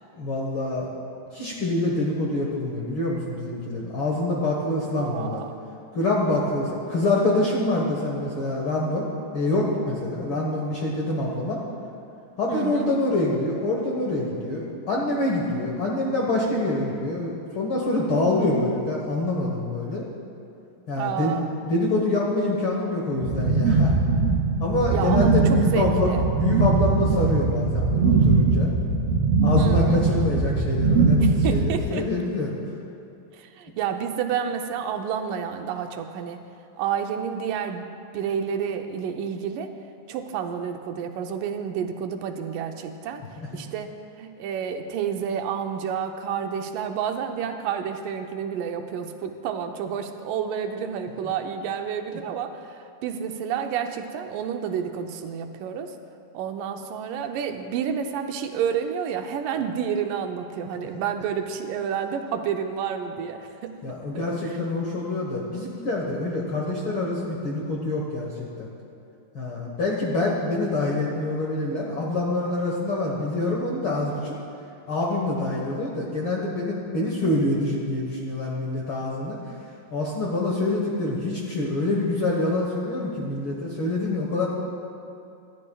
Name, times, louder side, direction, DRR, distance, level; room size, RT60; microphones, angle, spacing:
voice 1, 0.1-0.9 1.3-5.4 5.9-9.1 9.3-11.6 12.4-20.0 20.9-21.3 21.7-23.9 24.6-28.7 29.4-31.2 31.5-32.5 43.4-43.6 60.8-60.9 63.8-68.7 69.3-74.4 74.9-79.4 79.9-84.5, left 2 dB, 55° left, -2 dB, 1.5 m, -26 dB
voice 2, 5.0-5.6 12.5-12.9 21.0-21.5 24.9-26.3 29.6-30.1 31.2-32.1 33.3-36.4 36.8-37.9 38.1-39.7 40.1-56.0 56.3-64.0, right 7 dB, 80° right, 5 dB, 2.2 m, -30 dB
sound 1, 23.2-31.8, right 3 dB, 60° right, 2.5 m, -21 dB
25.0 x 12.0 x 2.3 m, 2.6 s
omnidirectional pair, 3.9 m